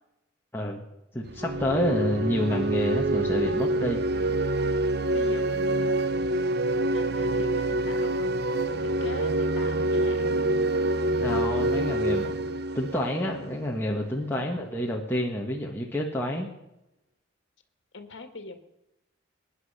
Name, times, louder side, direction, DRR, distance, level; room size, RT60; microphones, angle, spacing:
voice 1, 0.5-0.8 1.1-4.0 11.2-12.3 12.7-16.5, equal, 10° left, -2 dB, 1.6 m, -28 dB
sound 1, 1.3-13.9, right 1 dB, 55° right, 0.8 m, -26 dB
voice 2, 5.1-6.1 6.6-8.3 8.8-10.4 14.2-14.5 17.9-18.6, left 2 dB, 70° left, 7 dB, 1.8 m, -42 dB
20.0 x 10.0 x 5.7 m, 0.89 s
head